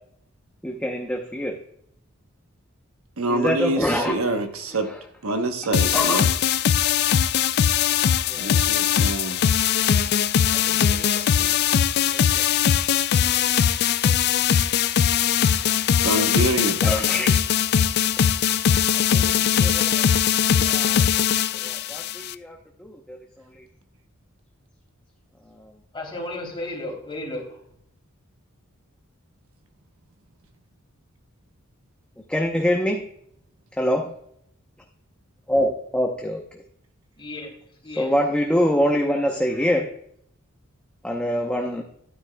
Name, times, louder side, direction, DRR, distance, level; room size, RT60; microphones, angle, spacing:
voice 1, 0.6-1.6 3.3-4.1 5.9-6.2 8.2-8.6 10.7-11.6 12.1-12.4 16.8-17.4 19.1-20.1 20.6-21.3 21.5-23.2 23.5-23.6 25.6-25.7 32.3-33.0 33.8-34.1 35.5-36.4 38.0-39.9 41.0-41.8, equal, 5° left, 1 dB, 0.8 m, -25 dB
voice 2, 3.2-4.9 5.2-6.3 8.3-9.4 16.0-16.8, right 2 dB, 75° right, 6 dB, 1.0 m, -26 dB
sound 1, 5.7-22.3, left 8 dB, 50° left, 0.3 m, -21 dB
voice 3, 25.9-27.7 37.2-37.5 37.8-38.1, left 1 dB, 25° left, -1 dB, 3.2 m, -33 dB
12.0 x 9.6 x 2.3 m, 0.69 s
head